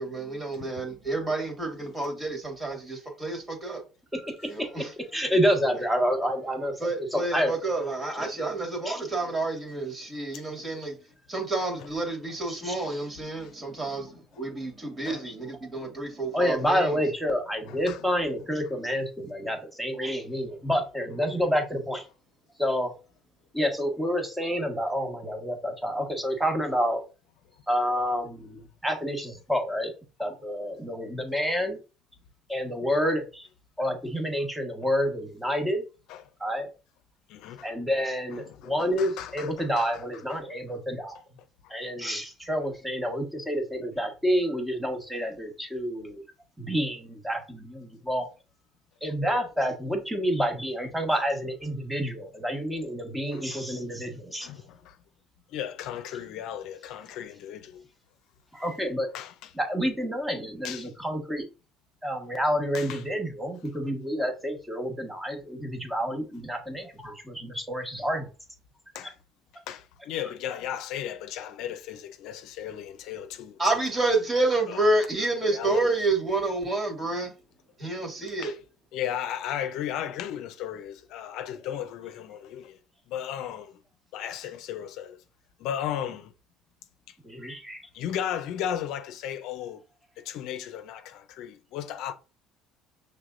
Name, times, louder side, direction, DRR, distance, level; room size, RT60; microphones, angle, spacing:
voice 1, 0.0-3.8 4.5-4.9 5.7-5.8 6.8-10.9 11.3-17.0 73.6-77.3 77.8-78.5, right 2 dB, 25° right, 2.2 m, -29 dB
voice 2, 4.1-7.5 8.8-9.0 12.6-12.8 15.2-15.3 16.3-22.0 22.6-22.9 23.5-27.0 27.7-29.9 30.2-31.8 32.5-33.5 33.8-35.8 36.4-36.7 37.6-41.2 41.7-46.2 46.6-48.3 49.0-54.5 58.5-59.1 59.6-61.5 62.0-68.3 87.2-87.8, equal, 5° right, 1.4 m, -28 dB
voice 3, 17.7-18.0 20.0-20.1 36.1-36.2 37.3-37.7 38.3-40.0 40.3-40.5 41.6-41.7 51.1-51.2 53.3-53.6 54.4-55.0 55.5-57.8 59.1-59.5 60.6-60.9 62.7-63.0 68.9-69.1 69.7-73.6 74.7-74.8 75.4-75.9 78.4-78.6 78.9-82.8 83.1-83.8 84.1-85.2 85.6-86.3 87.9-89.8 90.2-92.1, left 10 dB, 75° left, 0.5 m, -35 dB
5.7 x 3.4 x 2.5 m
supercardioid pair, 80°, 0 cm